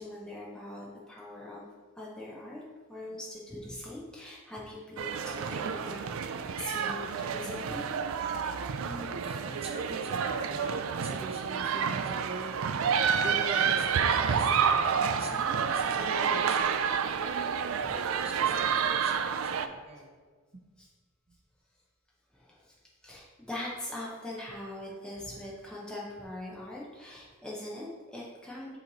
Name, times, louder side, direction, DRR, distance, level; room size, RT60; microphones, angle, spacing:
voice 1, 0.0-1.7 2.0-2.6 2.9-7.9 17.2-17.4 17.8-17.9 19.2-19.3 20.8-20.9 22.3-22.8 23.0-28.8, left 1 dB, 5° left, -5 dB, 0.7 m, -42 dB
sound 1, 5.0-19.7, right 6 dB, 65° right, 0.4 m, -29 dB
voice 2, 8.7-12.5 13.2-20.1 20.5-20.6, right 2 dB, 25° right, 0 dB, 0.8 m, -43 dB
8.1 x 3.1 x 4.0 m, 1.5 s
head